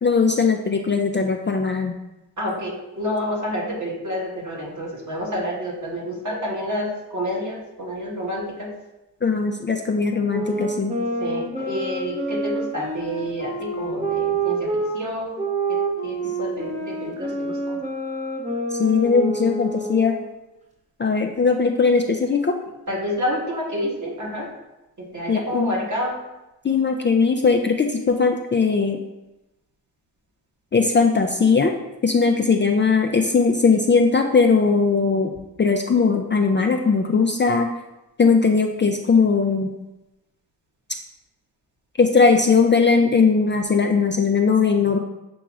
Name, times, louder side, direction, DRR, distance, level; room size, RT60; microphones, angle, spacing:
voice 1, 0.0-1.9 9.2-10.9 18.7-20.1 21.0-22.6 25.3-25.7 26.6-29.0 30.7-31.7 32.0-35.3 35.6-37.7 38.2-39.7 42.0-45.0, left 4 dB, 30° left, 2 dB, 0.4 m, -19 dB
voice 2, 2.4-8.7 11.2-17.8 22.9-24.5 25.0-26.2, equal, 45° right, -3 dB, 1.6 m, -29 dB
sound 1, 10.2-14.9 15.4-20.3, right 2 dB, 15° right, 0.8 m, -27 dB
6.9 x 2.9 x 2.4 m, 0.96 s
cardioid pair, 45°, 41 cm